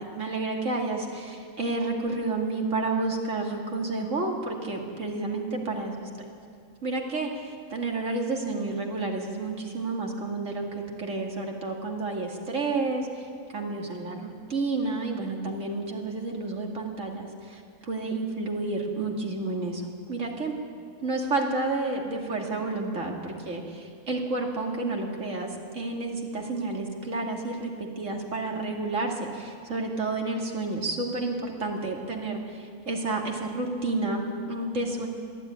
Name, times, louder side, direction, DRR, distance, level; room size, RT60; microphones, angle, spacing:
voice 1, 0.1-6.1 6.8-13.2 13.5-19.8 20.1-20.6 21.0-35.1, right 3 dB, 60° right, 0 dB, 2.7 m, -30 dB
21.5 x 13.5 x 9.4 m, 2.3 s
omnidirectional pair, 1.5 m